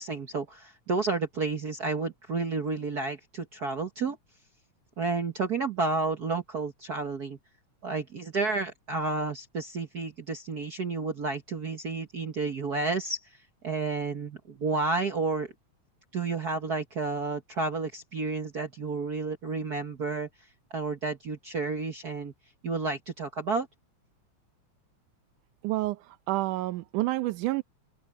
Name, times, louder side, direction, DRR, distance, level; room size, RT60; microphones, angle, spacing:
voice 1, 0.0-4.2 5.0-7.4 7.8-13.3 13.6-15.5 16.1-20.3 20.7-22.3 22.6-23.7, right 4 dB, 55° right, 1.1 m, -31 dB
voice 2, 25.6-27.6, right 18 dB, 90° right, 2.3 m, -29 dB
omnidirectional pair, 3.5 m